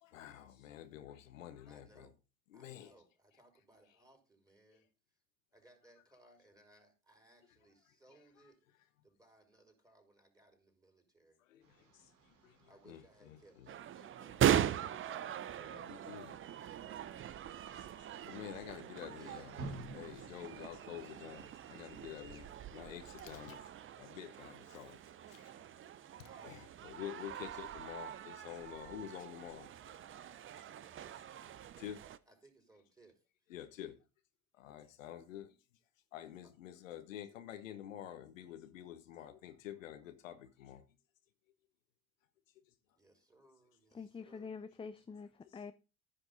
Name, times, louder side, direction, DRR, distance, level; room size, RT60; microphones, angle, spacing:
voice 1, 0.0-2.1 2.5-2.9 4.7-4.8 11.5-11.9 12.4-12.5 12.9-13.4 14.1-14.4 14.7-16.7 17.7-19.5 19.9-23.6 24.0-25.0 25.3-25.7 26.4-29.7 31.8-32.0 33.5-33.9 34.6-35.5 36.1-40.8, left 11 dB, 75° left, 1.1 m, -49 dB
voice 2, 1.7-2.2 2.5-4.9 5.5-8.6 9.0-11.4 12.6-13.8 19.1-19.5 26.2-26.6 32.2-33.2 36.4-36.5 43.0-44.5, right 2 dB, 10° right, 4.8 m, -65 dB
sound 1, 11.6-20.6, right 2 dB, 70° right, 2.7 m, -54 dB
sound 2, 13.7-32.2, right 10 dB, 30° right, 0.7 m, -40 dB
voice 3, 43.9-45.7, left 5 dB, 15° left, 0.6 m, -46 dB
15.0 x 6.0 x 4.0 m
figure-of-eight pair, 60°, 40 cm